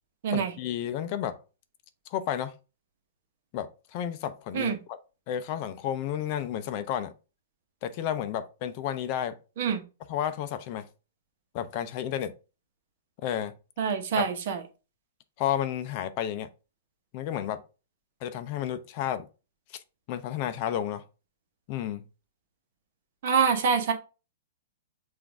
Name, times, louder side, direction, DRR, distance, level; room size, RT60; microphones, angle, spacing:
voice 1, 0.3-1.4 2.1-2.5 3.5-5.0 5.3-7.1 7.8-9.4 10.1-10.9 11.5-12.3 13.2-13.5 14.2-14.3 15.4-16.5 17.1-17.6 18.2-19.3 19.7-19.8 20.1-21.0 21.7-22.0, left 10 dB, 40° left, 0.4 m, -31 dB
voice 2, 13.8-14.6 23.2-23.9, right 6 dB, 55° right, 1.0 m, -25 dB
5.9 x 2.5 x 3.4 m
hypercardioid pair, 155°, 0 cm